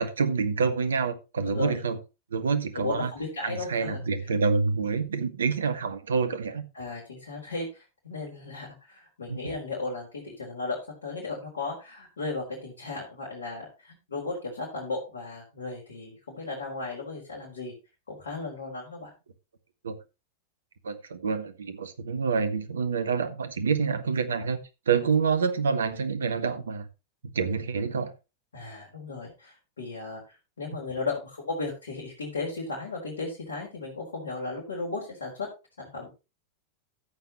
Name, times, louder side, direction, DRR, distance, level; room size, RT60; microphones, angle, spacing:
voice 1, 0.0-2.0 2.3-3.1 3.4-6.6 9.3-9.5 19.8-20.0 20.8-24.6 24.9-26.8 27.3-28.1, right 5 dB, 70° right, 1.5 m, -27 dB
voice 2, 2.7-4.0 6.7-17.7 18.1-19.1 28.5-35.5 35.8-36.1, left 3 dB, 70° left, 4.0 m, -35 dB
13.5 x 8.3 x 3.1 m
figure-of-eight pair, 90°, 0 cm